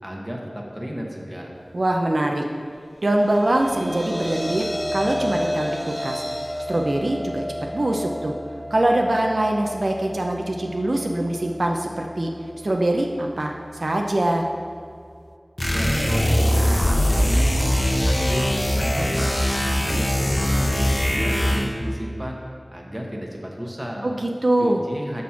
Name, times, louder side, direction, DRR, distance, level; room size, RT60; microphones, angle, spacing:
voice 1, 0.0-1.6 15.6-16.6 17.0-17.7 18.0-19.3 19.6-22.4 22.7-24.1 24.6-25.2, equal, 15° right, -1 dB, 1.2 m, -32 dB
voice 2, 1.7-2.4 3.0-6.2 6.7-7.5 7.7-8.3 8.7-12.3 12.6-13.5 13.8-14.5 24.0-24.8, right 1 dB, 70° right, 1 dB, 0.5 m, -23 dB
sound 1, 3.0-15.3, equal, 5° left, 0.3 m, -33 dB
sound 2, 15.6-21.8, equal, 40° left, 0.9 m, -21 dB
6.2 x 4.2 x 5.7 m, 2.3 s
wide cardioid pair, 40°, 0 cm